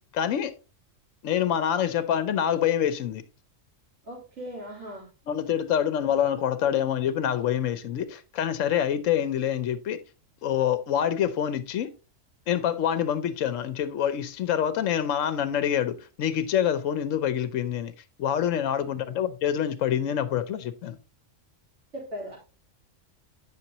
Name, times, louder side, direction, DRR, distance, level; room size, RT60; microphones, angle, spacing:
voice 1, 0.1-0.5 1.2-3.2 5.3-10.0 10.4-11.9 12.5-17.9 18.2-21.0, left 9 dB, 75° left, 1.1 m, -26 dB
voice 2, 4.0-5.1 19.1-19.2 21.9-22.4, equal, 60° right, 3.9 m, -38 dB
8.7 x 6.0 x 2.8 m
omnidirectional pair, 1.3 m